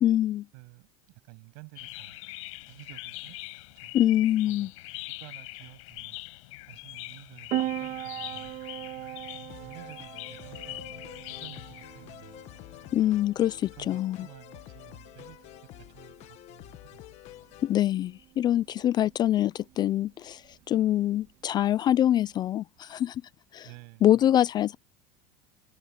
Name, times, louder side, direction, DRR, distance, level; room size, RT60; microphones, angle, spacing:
voice 1, 0.0-0.4 3.9-4.7 12.9-14.2 17.6-20.4 20.7-23.2 23.5-23.7 24.0-24.8, left 12 dB, 25° left, 0.4 m, -24 dB
voice 2, 0.5-2.2 2.7-3.4 3.8-4.0 4.5-4.7 5.2-6.2 6.7-8.6 9.6-10.9 11.4-12.5 13.7-15.5 15.7-17.2 23.6-24.1, right 38 dB, 65° right, 7.5 m, -51 dB
sound 1, 1.8-13.2, left 21 dB, 90° left, 7.2 m, -43 dB
Piano, 7.5-22.5, right 14 dB, 45° right, 1.9 m, -41 dB
sound 2, 9.5-17.8, left 15 dB, 45° left, 1.2 m, -49 dB
cardioid pair, 160°, 16 cm